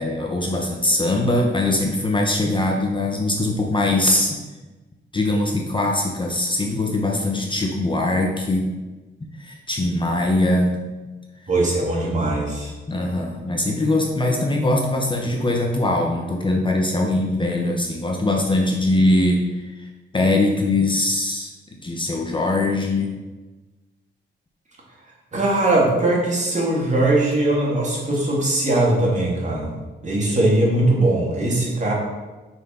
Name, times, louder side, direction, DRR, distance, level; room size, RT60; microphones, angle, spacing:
voice 1, 0.0-4.4 5.1-8.7 9.4-10.8 12.9-21.5 21.8-23.1, left 2 dB, 25° left, 1 dB, 0.8 m, -21 dB
voice 2, 11.5-12.7 25.3-29.7 30.0-31.9, right 2 dB, 40° right, -3 dB, 2.2 m, -20 dB
6.5 x 4.7 x 5.5 m, 1.2 s
wide cardioid pair, 140°, 19 cm